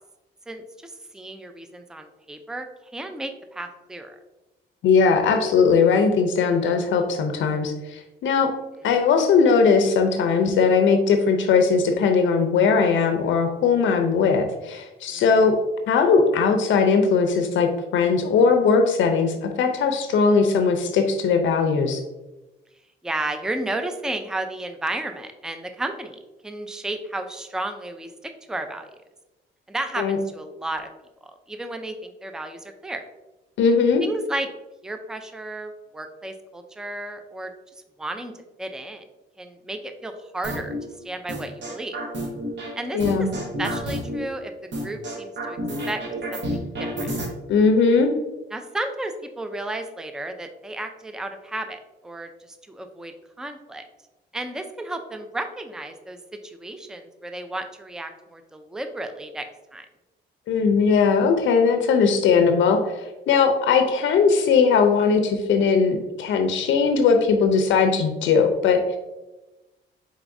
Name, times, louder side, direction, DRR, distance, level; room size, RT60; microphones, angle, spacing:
voice 1, 0.5-2.7 2.9-4.2 15.1-15.4 23.0-28.9 29.7-30.9 31.5-33.0 34.0-34.5 34.8-37.5 38.0-38.3 38.6-39.0 39.4-40.7 41.0-42.0 42.8-43.3 43.6-44.5 44.8-45.6 45.9-46.0 46.3-47.1 48.5-52.3 52.7-53.1 53.4-53.8 54.3-56.2 56.4-59.5 59.7-59.9, right 1 dB, 5° right, 7 dB, 0.4 m, -33 dB
voice 2, 4.8-8.5 8.8-15.6 15.9-22.0 30.0-30.2 33.6-34.0 42.9-43.3 47.5-48.1 60.5-69.0, left 5 dB, 75° left, 5 dB, 0.5 m, -19 dB
sound 1, 40.4-40.8 41.3-42.7 43.0-44.2 44.7-47.3, right 1 dB, 65° right, 1.2 m, -29 dB
4.6 x 4.0 x 2.6 m, 1.0 s
cardioid pair, 90°, 20 cm